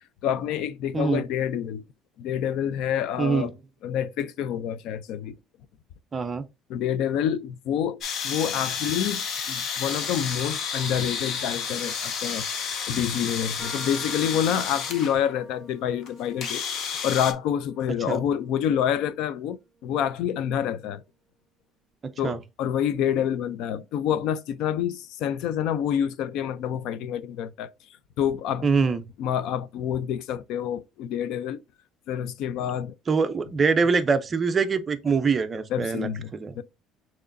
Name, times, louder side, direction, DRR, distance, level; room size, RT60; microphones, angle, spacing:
voice 1, 0.2-1.8 2.2-3.5 3.8-5.4 6.7-21.0 22.2-27.7 28.2-28.7 29.2-31.6 32.1-32.9 35.7-36.3 36.6-36.7, left 9 dB, 65° left, 0.4 m, -27 dB
voice 2, 0.9-1.2 3.2-3.5 6.1-6.5 18.1-18.2 22.2-22.4 28.6-29.0 33.1-36.6, right 5 dB, 20° right, 0.4 m, -24 dB
sound 1, 8.0-15.2 16.0-16.1 16.4-17.3, left 6 dB, 45° left, 0.7 m, -31 dB
sound 2, 13.6-21.0, right 2 dB, 15° left, 2.3 m, -49 dB
6.4 x 3.0 x 2.5 m
cardioid pair, 165°, 0 cm